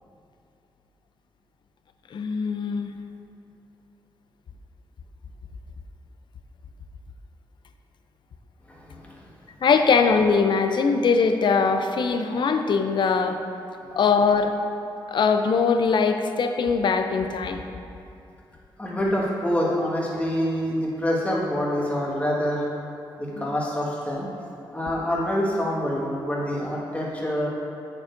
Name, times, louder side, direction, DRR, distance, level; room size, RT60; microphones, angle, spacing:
voice 1, 2.1-2.9 9.6-13.4 13.9-14.5 15.1-17.6 23.3-23.5, left 5 dB, 60° left, 7 dB, 0.5 m, -21 dB
voice 2, 8.7-9.3 13.9-14.0 18.8-22.6 23.2-24.3 24.7-27.5, equal, 15° left, -5 dB, 1.6 m, -26 dB
8.3 x 6.8 x 2.6 m, 2.6 s
cardioid pair, 70°, 9 cm